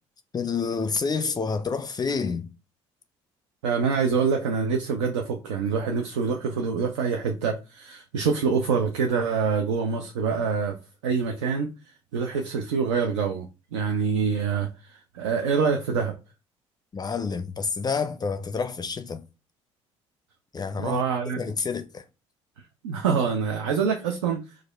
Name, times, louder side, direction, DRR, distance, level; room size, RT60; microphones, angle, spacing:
voice 1, 0.3-2.4 16.9-19.2 20.5-21.0 21.4-22.0, left 5 dB, 25° left, 0.4 m, -28 dB
voice 2, 3.6-10.8 11.0-11.7 12.1-13.5 13.7-16.2 20.8-21.4 22.6-24.4, right 5 dB, 80° right, 0.4 m, -25 dB
4.6 x 2.3 x 2.3 m
figure-of-eight pair, 50°, 15 cm